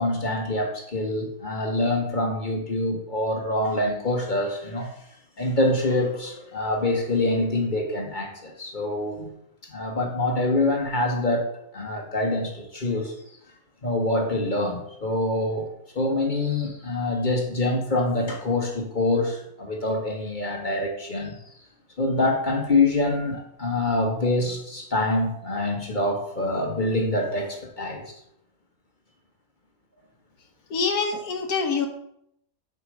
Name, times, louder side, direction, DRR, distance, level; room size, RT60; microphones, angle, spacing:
voice 1, 0.0-4.9 5.4-9.3 9.6-11.5 11.7-13.1 13.8-21.4 22.0-28.0, left 2 dB, 35° left, 2 dB, 1.3 m, -25 dB
voice 2, 30.7-31.9, left 5 dB, 75° left, 5 dB, 1.5 m, -25 dB
6.4 x 5.1 x 6.3 m, 0.76 s
omnidirectional pair, 1.6 m